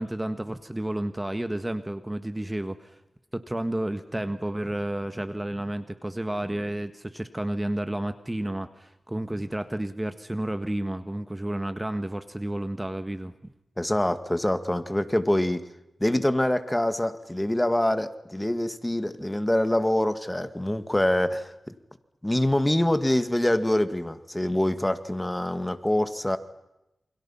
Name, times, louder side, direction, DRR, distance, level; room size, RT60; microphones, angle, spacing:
voice 1, 0.0-3.0 3.3-13.5, right 1 dB, 15° right, 10 dB, 1.6 m, -31 dB
voice 2, 13.8-15.6 16.0-21.7 22.2-26.4, left 1 dB, 10° left, 11 dB, 1.9 m, -25 dB
29.0 x 27.0 x 5.7 m, 0.89 s
wide cardioid pair, 80°, 0 cm